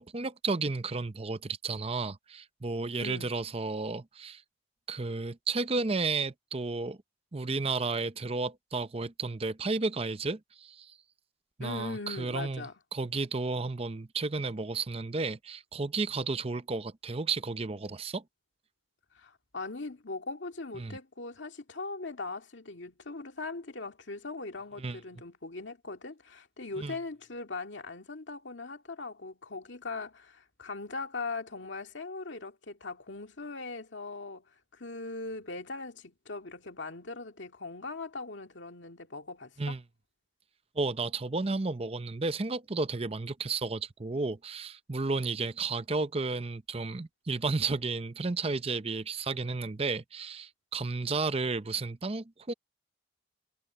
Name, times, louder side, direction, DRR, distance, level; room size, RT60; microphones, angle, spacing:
voice 1, 0.0-4.4 4.9-7.0 7.3-10.9 11.6-12.6 12.9-18.2 20.8-21.0 24.8-25.0 26.8-27.0 39.6-39.8 40.8-52.5, right 3 dB, 30° right, 0.6 m, -32 dB
voice 2, 11.6-12.7 19.1-34.4 34.7-39.8, left 3 dB, 75° left, 2.1 m, -40 dB
head